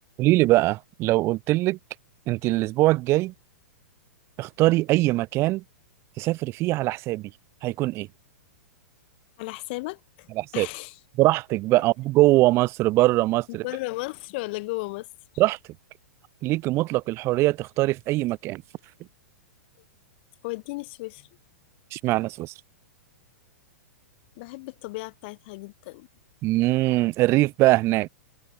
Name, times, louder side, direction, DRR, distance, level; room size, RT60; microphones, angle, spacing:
voice 1, 0.2-1.8 2.3-3.3 4.4-5.6 6.2-7.3 7.6-8.1 10.4-10.7 11.2-13.6 15.4-15.6 16.4-18.6 21.9-22.5 26.4-28.1, right 18 dB, 35° right, 1.7 m, -22 dB
voice 2, 9.4-11.0 13.6-15.1 20.4-21.3 24.4-26.1, left 24 dB, 45° left, 3.3 m, -35 dB
figure-of-eight pair, 105°, 8 cm